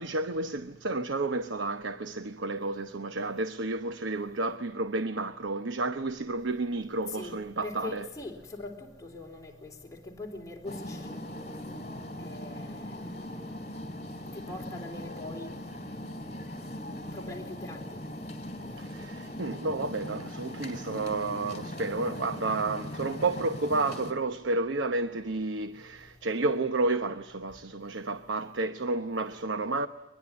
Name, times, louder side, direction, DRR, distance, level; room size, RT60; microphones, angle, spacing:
voice 1, 0.0-8.1 18.8-29.9, right 3 dB, 85° right, 0.9 m, -31 dB
voice 2, 7.1-11.2 12.2-13.1 14.3-16.1 17.1-18.0, left 2 dB, 20° left, 3.6 m, -42 dB
sound 1, 10.6-24.1, left 1 dB, 40° left, 3.5 m, -40 dB
23.5 x 21.5 x 9.6 m
head